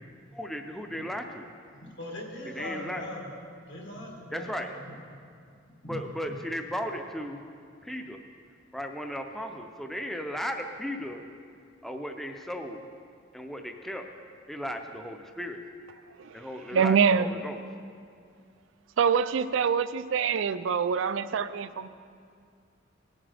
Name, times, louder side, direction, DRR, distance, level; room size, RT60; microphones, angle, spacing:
voice 1, 0.3-1.5 2.5-3.0 4.3-4.7 5.8-7.4 7.8-8.2 8.7-11.2 11.8-12.9 13.3-14.1 14.5-15.7 16.3-17.6, equal, ahead, 4 dB, 0.5 m, -36 dB
voice 2, 2.0-3.4 3.7-4.8 5.8-6.0, left 1 dB, 65° left, -1 dB, 2.0 m, -40 dB
voice 3, 16.7-17.3 19.0-21.9, right 6 dB, 70° right, 13 dB, 0.4 m, -25 dB
17.0 x 7.3 x 3.4 m, 2.3 s
head